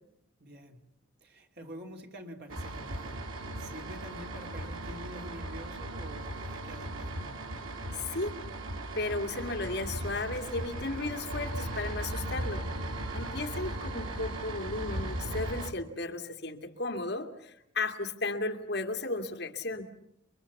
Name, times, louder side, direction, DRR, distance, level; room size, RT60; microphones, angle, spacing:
voice 1, 0.4-0.9 1.2-7.4 13.1-13.8, equal, 55° right, 3.0 m, -47 dB
sound 1, 2.5-15.7, right 1 dB, 85° right, 2.6 m, -37 dB
voice 2, 7.9-8.3 8.9-12.6 13.1-19.9, left 2 dB, 55° left, 2.3 m, -34 dB
sound 2, 8.9-15.7, equal, 35° right, 4.0 m, -53 dB
29.5 x 23.0 x 7.2 m
head